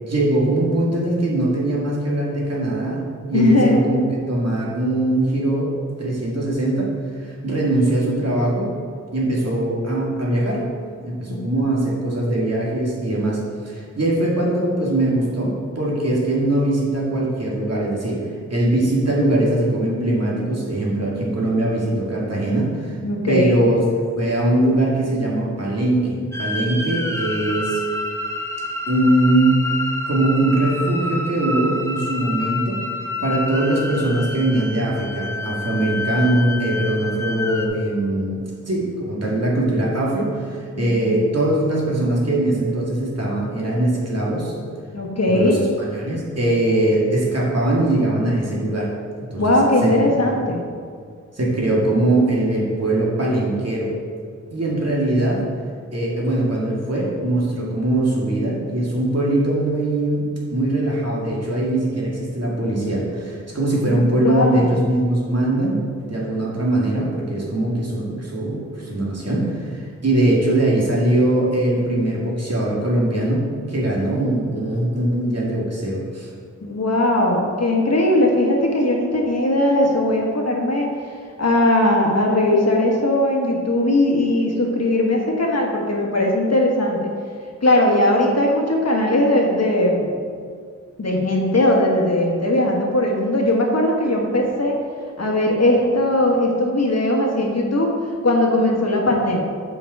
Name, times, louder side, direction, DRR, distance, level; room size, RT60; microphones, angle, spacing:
voice 1, 0.1-3.0 3.3-6.9 7.2-8.7 9.1-10.6 11.0-18.2 18.5-22.9 23.3-27.8 28.9-29.6 30.1-32.8 33.2-44.5 45.3-48.9 49.2-49.4 49.8-49.9 50.2-50.4 51.3-53.9 54.5-55.4 55.9-76.3, right 1 dB, 55° right, -4 dB, 1.9 m, -21 dB
voice 2, 3.3-3.9 11.3-11.4 23.0-23.6 40.8-41.1 44.9-45.5 49.4-50.6 63.9-64.7 76.6-81.1 81.4-87.1 87.6-90.1 91.0-94.8 95.2-97.9 98.2-99.4, left 1 dB, 60° left, -1 dB, 1.4 m, -19 dB
sound 1, 26.3-37.7, left 2 dB, 10° left, 0.8 m, -28 dB
7.8 x 5.3 x 4.7 m, 2.1 s
wide cardioid pair, 80°, 30 cm